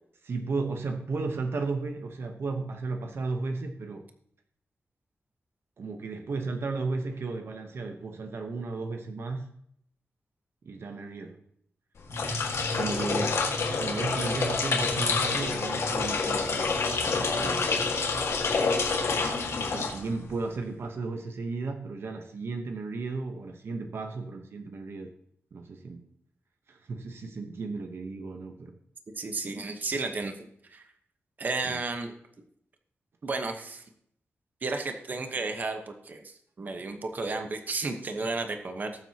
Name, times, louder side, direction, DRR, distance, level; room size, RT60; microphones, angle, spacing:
voice 1, 0.2-4.0 5.8-9.5 10.6-11.4 12.8-13.4 13.8-16.8 17.0-17.7 19.6-25.1 25.5-26.1 26.7-28.8 31.6-31.8, right 3 dB, 65° right, 5 dB, 0.9 m, -34 dB
sound 1, 12.0-20.4, left 4 dB, 85° left, 1.8 m, -28 dB
voice 2, 29.2-30.9 31.4-32.1 33.2-33.8 34.6-39.0, right 3 dB, 40° right, 5 dB, 1.0 m, -33 dB
19.0 x 7.6 x 2.9 m, 0.70 s
wide cardioid pair, 175°, 5 cm